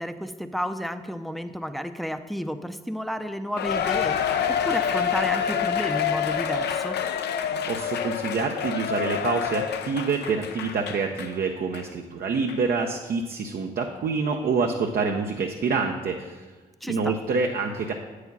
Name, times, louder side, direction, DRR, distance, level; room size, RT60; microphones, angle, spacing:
voice 1, 0.0-7.0 16.8-17.1, equal, ahead, 9 dB, 0.6 m, -32 dB
Cheering, 3.6-11.3 11.7-11.8 12.5-12.6, left 8 dB, 65° left, 0.5 m, -27 dB
voice 2, 7.7-16.5 16.9-17.9, right 4 dB, 55° right, 3 dB, 0.6 m, -27 dB
8.0 x 4.9 x 5.4 m, 1.3 s
supercardioid pair, 50°, 18 cm